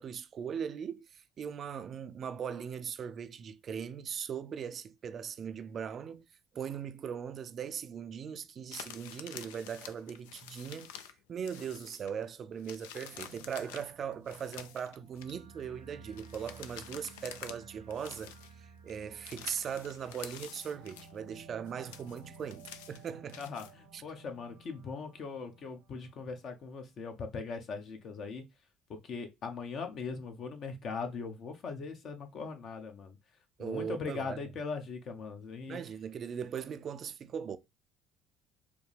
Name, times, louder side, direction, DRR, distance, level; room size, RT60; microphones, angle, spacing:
voice 1, 0.0-6.3 6.5-10.9 11.3-23.4 23.9-24.0 33.6-34.4 35.7-37.6, right 7 dB, 45° right, 0.4 m, -39 dB
sound 1, 8.7-11.2 11.5-12.2 12.6-15.3 16.1-17.7 17.9-18.5 18.9-21.2 21.6-23.7, left 9 dB, 75° left, 0.3 m, -49 dB
sound 2, 13.1-26.7, right 5 dB, 85° right, 1.0 m, -55 dB
voice 2, 23.4-28.4 28.9-33.2 33.6-35.8, left 4 dB, 50° left, 0.8 m, -40 dB
4.7 x 2.1 x 3.3 m
hypercardioid pair, 60°, 0 cm